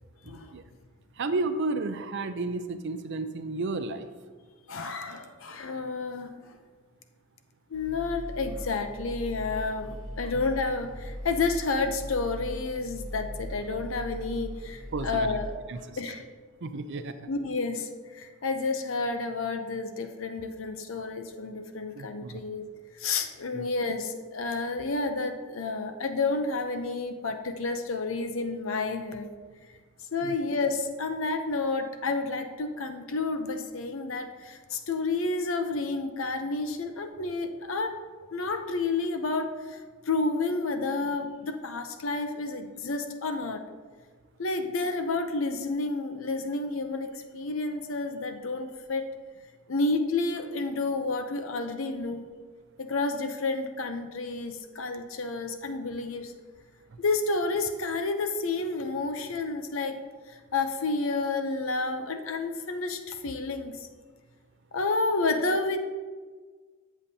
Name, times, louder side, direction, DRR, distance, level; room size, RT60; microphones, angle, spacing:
voice 1, 0.2-0.6 1.2-4.1 10.2-10.3 14.9-15.3 15.7-16.0 16.6-17.3 21.9-22.4 23.5-23.7 30.2-30.3 56.9-57.0, right 3 dB, 55° right, 10 dB, 0.5 m, -32 dB
voice 2, 4.7-6.5 7.7-15.5 16.0-16.2 17.3-29.3 30.1-38.0 38.3-39.8 40.1-43.6 44.4-49.2 49.7-52.3 52.8-56.3 57.0-63.9 64.7-65.8, left 3 dB, 65° left, 7 dB, 0.7 m, -30 dB
sound 1, 7.7-15.5, equal, 25° right, 1.7 m, -39 dB
13.5 x 7.2 x 2.8 m, 1.5 s
head